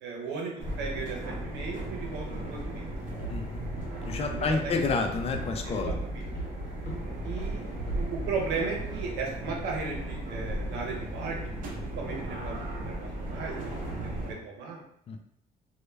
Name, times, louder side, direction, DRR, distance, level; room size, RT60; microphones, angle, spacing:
voice 1, 0.0-2.9 3.1-3.4 4.2-4.8 5.6-6.3 7.2-7.6 7.9-11.4 11.6-13.5 13.8-14.8, right 4 dB, 90° right, -1 dB, 0.7 m, -36 dB
sound 1, 0.6-14.3, right 1 dB, 55° right, 0.8 m, -37 dB
Walk footsteps, 3.0-9.1, right 1 dB, 65° left, 0.8 m, -38 dB
voice 2, 3.3-3.7 4.0-5.9 15.1-15.2, left 4 dB, 35° left, 5 dB, 0.4 m, -29 dB
2.2 x 2.1 x 3.2 m, 0.72 s
cardioid pair, 110°, 17 cm